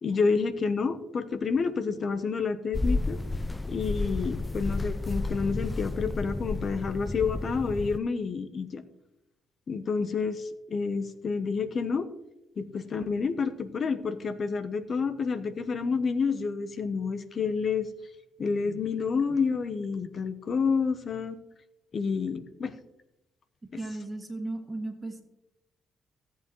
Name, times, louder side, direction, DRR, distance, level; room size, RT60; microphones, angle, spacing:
voice 1, 0.0-3.2 3.6-8.8 9.7-12.1 12.6-17.9 18.4-21.4 21.9-22.7, left 5 dB, 45° left, 12 dB, 0.8 m, -29 dB
sound 1, 2.7-8.0, left 2 dB, 15° left, 0.3 m, -31 dB
voice 2, 23.8-25.2, right 2 dB, 15° right, 1 dB, 2.5 m, -35 dB
16.5 x 8.4 x 3.1 m, 0.88 s
cardioid pair, 90°, 0 cm